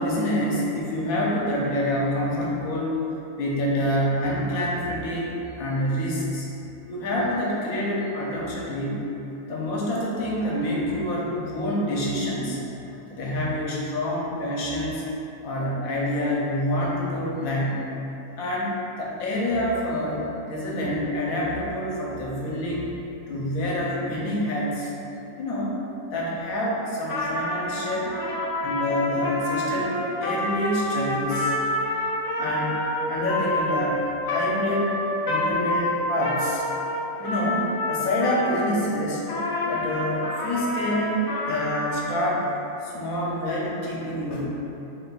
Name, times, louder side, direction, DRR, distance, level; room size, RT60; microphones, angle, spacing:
voice 1, 0.0-3.0 3.4-6.5 6.9-9.0 9.5-12.6 13.1-15.1 15.4-17.8 18.4-18.7 19.0-22.9 23.3-24.9 25.4-25.8 26.1-28.1 28.6-31.5 32.4-32.8 33.1-34.0 34.3-36.6 37.2-39.2 39.6-42.5 42.8-44.5, left 1 dB, 75° left, -4 dB, 1.2 m, -27 dB
Trumpet, 27.0-38.8 39.3-42.3, left 1 dB, 55° left, 1.0 m, -28 dB
4.0 x 4.0 x 2.3 m, 3.0 s
omnidirectional pair, 1.5 m